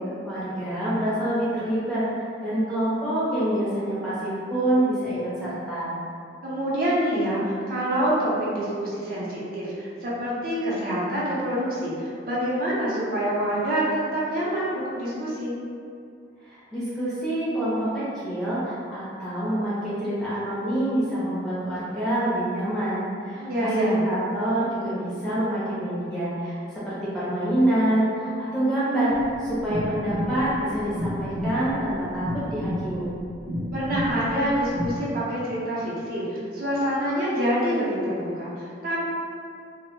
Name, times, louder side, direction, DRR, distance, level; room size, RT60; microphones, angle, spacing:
voice 1, 0.2-2.0 2.4-5.9 16.5-29.1 29.4-33.1, right 1 dB, 5° left, -11 dB, 0.5 m, -26 dB
voice 2, 6.4-15.5 23.3-24.0 33.7-39.0, equal, 50° right, -8 dB, 0.6 m, -26 dB
sound 1, 29.1-35.0, equal, 90° right, 0.6 m, -31 dB
2.1 x 2.0 x 2.9 m, 2.4 s
head